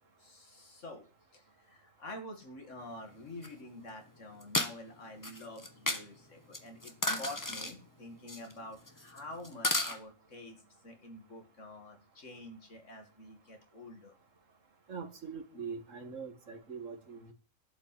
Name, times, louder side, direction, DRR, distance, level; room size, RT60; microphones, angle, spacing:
voice 1, 0.2-1.0 1.3-14.1, left 1 dB, 70° left, 4 dB, 2.5 m, -48 dB
sound 1, 3.4-3.5 4.4-4.7 5.2-6.0 6.5-7.7 8.3-8.5 8.9-9.2 9.4-10.0, left 2 dB, 15° left, 1.2 m, -33 dB
voice 2, 14.9-17.3, right 5 dB, 75° right, 6 dB, 2.0 m, -43 dB
11.5 x 5.4 x 8.5 m, 0.36 s
omnidirectional pair, 1.3 m